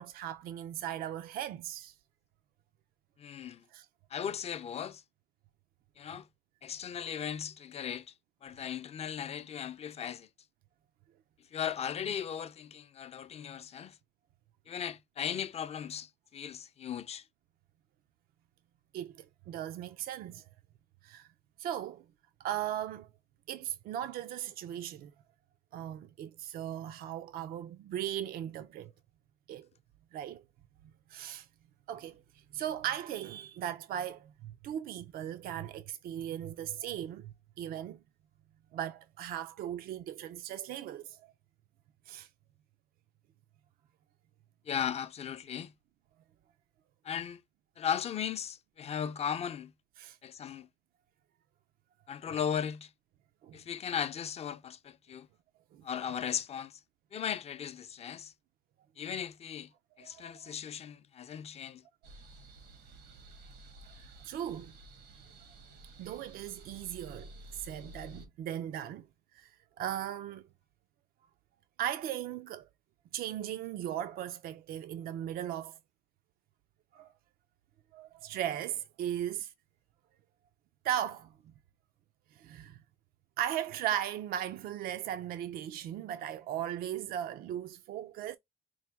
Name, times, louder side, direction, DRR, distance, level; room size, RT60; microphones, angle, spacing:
voice 1, 0.0-1.9 3.7-3.9 18.9-20.4 21.0-21.3 21.6-22.0 22.4-23.1 23.5-25.1 25.7-28.9 29.5-29.7 30.1-30.4 31.1-31.5 31.9-32.2 32.5-38.0 38.7-41.3 42.1-42.3 50.0-50.2 52.3-52.4 53.4-53.6 55.7-55.8 60.0-60.5 64.2-64.7 66.0-69.0 69.3-69.5 69.8-70.4 71.8-72.7 73.1-75.8 76.9-77.1 77.9-79.5 80.8-81.3 82.4-82.8 83.4-88.4, right 11 dB, 65° right, 0.4 m, -37 dB
voice 2, 3.2-3.6 4.1-5.0 6.0-6.3 6.6-8.1 8.4-10.3 11.5-14.0 14.7-17.2 44.7-45.7 47.0-47.4 47.8-49.7 50.2-50.7 52.1-52.9 53.5-55.3 55.8-56.8 57.1-58.3 59.0-59.7 60.0-61.8, left 8 dB, 40° left, 0.5 m, -37 dB
sound 1, 62.0-68.3, right 1 dB, 90° right, 1.4 m, -52 dB
4.6 x 2.2 x 3.3 m
cardioid pair, 110°, 17 cm